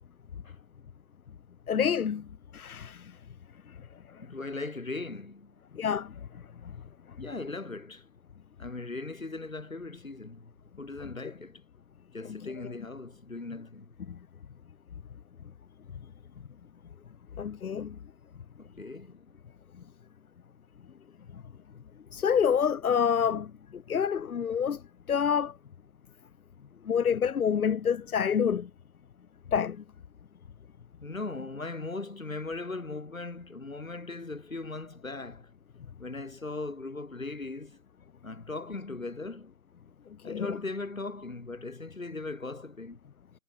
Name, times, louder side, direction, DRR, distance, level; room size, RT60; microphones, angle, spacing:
voice 1, 1.7-2.3 2.5-3.2 3.7-3.8 4.1-4.2 5.7-6.2 6.6-6.7 12.3-12.5 14.1-14.2 17.4-18.0 21.3-21.4 22.1-24.8 25.1-25.5 26.8-28.7 29.5-29.8 40.2-40.6, left 7 dB, 80° left, 0.6 m, -28 dB
voice 2, 4.2-5.6 7.2-8.1 8.6-11.6 12.1-13.9 18.6-19.4 31.0-35.5 36.0-37.8 38.2-39.5 40.2-43.0, left 3 dB, 65° left, 3.9 m, -39 dB
figure-of-eight pair, 160°, 43 cm